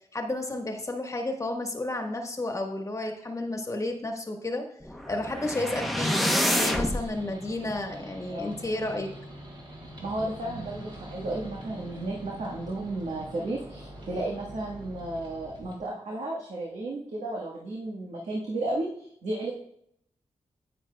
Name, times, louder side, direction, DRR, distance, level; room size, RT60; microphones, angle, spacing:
voice 1, 0.1-4.7 5.1-9.1, left 2 dB, 25° left, 3 dB, 1.3 m, -32 dB
sound 1, 4.8-7.0, equal, ahead, 0.8 m, -27 dB
sound 2, 6.5-15.8, right 1 dB, 45° right, 2.6 m, -44 dB
voice 2, 8.3-8.6 10.0-19.5, right 2 dB, 75° right, -3 dB, 1.4 m, -33 dB
10.0 x 8.9 x 2.3 m, 0.70 s
wide cardioid pair, 105°, 12 cm